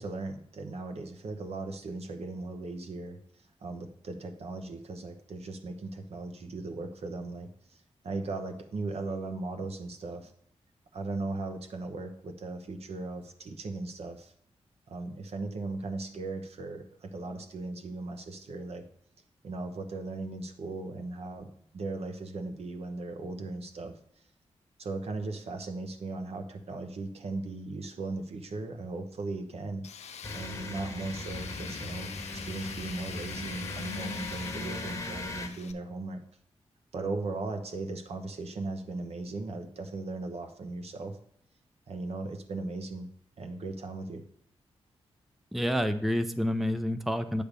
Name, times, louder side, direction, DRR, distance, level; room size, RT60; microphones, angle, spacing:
voice 1, 0.0-10.3 10.9-14.3 14.9-18.8 19.4-23.9 24.8-29.9 30.3-36.2 36.9-41.2 41.9-43.1 43.4-44.2, right 3 dB, 70° right, 6 dB, 0.9 m, -38 dB
Tools, 29.8-35.7, left 7 dB, 90° left, 0.5 m, -44 dB
sound 1, 30.2-35.5, left 2 dB, 30° left, 1.0 m, -39 dB
voice 2, 45.5-47.4, equal, ahead, 9 dB, 0.4 m, -28 dB
8.6 x 3.4 x 6.6 m, 0.67 s
wide cardioid pair, 95°, 11 cm